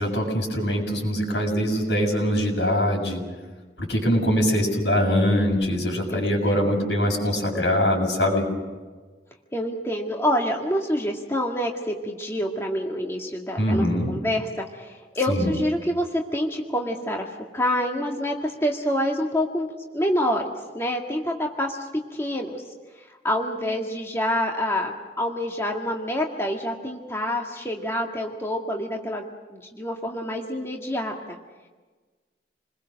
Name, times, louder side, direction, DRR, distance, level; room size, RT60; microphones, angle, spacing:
voice 1, 0.0-3.2 3.8-8.5 13.6-14.1 15.3-15.5, equal, 85° left, 1 dB, 7.1 m, -23 dB
voice 2, 6.1-6.5 9.5-19.7 19.9-20.4 20.7-22.6 23.0-31.4, equal, 15° left, 0 dB, 1.9 m, -27 dB
29.0 x 21.5 x 6.5 m, 1.3 s
head